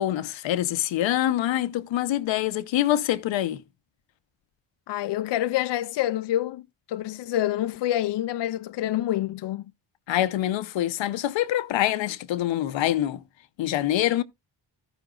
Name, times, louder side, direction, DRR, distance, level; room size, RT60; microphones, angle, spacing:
voice 1, 0.0-3.6 10.1-13.2 13.6-14.2, left 13 dB, 85° left, 0.9 m, -25 dB
voice 2, 4.9-6.6 6.9-9.7, left 13 dB, 70° left, 0.6 m, -27 dB
13.5 x 5.9 x 3.8 m
cardioid pair, 85°, 44 cm